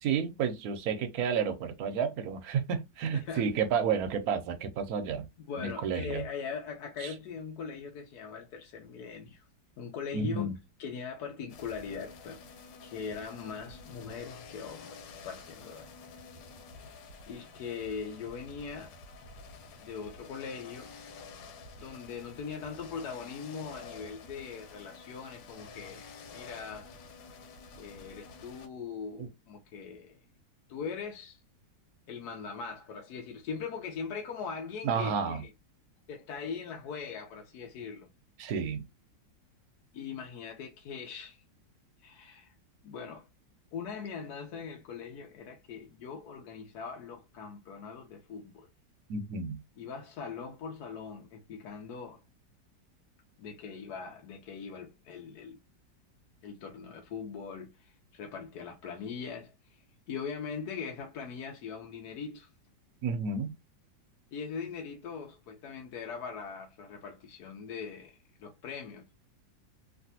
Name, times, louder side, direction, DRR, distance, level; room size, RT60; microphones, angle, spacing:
voice 1, 0.0-5.3 5.6-6.2 7.0-7.1 10.1-10.5 29.2-29.3 34.8-35.4 38.4-38.8 49.1-49.6 63.0-63.5, right 6 dB, 65° right, 1.0 m, -31 dB
voice 2, 3.1-3.5 5.4-9.5 9.8-10.5 10.8-12.4 12.8-15.9 17.3-18.9 19.8-20.9 21.8-26.9 27.8-30.2 30.7-31.4 32.1-35.5 36.1-38.1 39.9-41.4 42.0-42.5 42.8-43.2 43.7-48.7 49.8-52.2 53.4-55.6 56.4-62.5 64.3-69.0, left 6 dB, 65° left, 1.1 m, -41 dB
sound 1, 11.5-28.7, left 4 dB, 85° left, 1.5 m, -49 dB
3.2 x 2.5 x 2.7 m
omnidirectional pair, 2.0 m